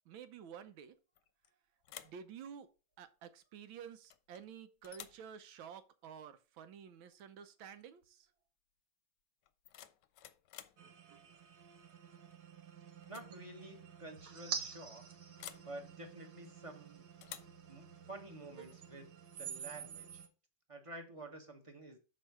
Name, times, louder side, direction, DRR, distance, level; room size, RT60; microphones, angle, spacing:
voice 1, 0.1-0.9 1.9-2.7 3.0-8.3, right 8 dB, 90° right, 1.6 m, -51 dB
sound 1, 1.2-1.5 1.8-2.3 4.1-4.5 4.8-5.3 7.1-7.3 7.6-8.0 9.4-10.8 12.3-12.6 13.0-13.3 13.6-13.7 15.4-15.7 17.2-17.6, left 11 dB, 70° left, 1.2 m, -52 dB
sound 2, 10.8-20.3, right 6 dB, 60° right, 1.6 m, -48 dB
voice 2, 13.1-15.1 15.6-17.1 17.7-19.1 19.4-20.2 20.7-22.0, right 1 dB, 20° right, 0.9 m, -50 dB
6.4 x 4.4 x 5.8 m
omnidirectional pair, 2.1 m